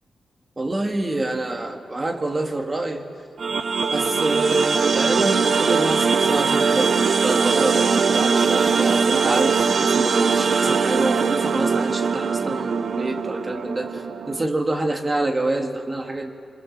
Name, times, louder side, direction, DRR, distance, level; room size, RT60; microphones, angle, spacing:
voice 1, 0.6-3.0 3.9-16.3, right 2 dB, 20° right, 3 dB, 2.0 m, -26 dB
sound 1, 3.4-14.4, right 5 dB, 55° right, 0.8 m, -21 dB
26.5 x 24.5 x 7.4 m, 2.5 s
wide cardioid pair, 145°, 0 cm